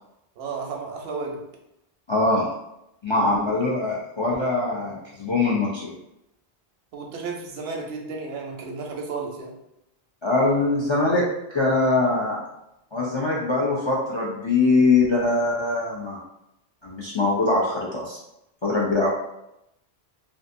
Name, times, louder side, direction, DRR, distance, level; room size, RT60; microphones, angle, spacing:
voice 1, 0.4-1.4 3.2-3.6 6.9-9.5, right 4 dB, 90° right, 1 dB, 0.8 m, -33 dB
voice 2, 2.1-2.5 3.0-5.9 10.2-11.2 11.5-12.4 12.9-16.2 16.8-18.2 18.6-19.1, left 3 dB, 50° left, -5 dB, 0.3 m, -22 dB
2.5 x 2.4 x 2.5 m, 0.85 s
omnidirectional pair, 1.0 m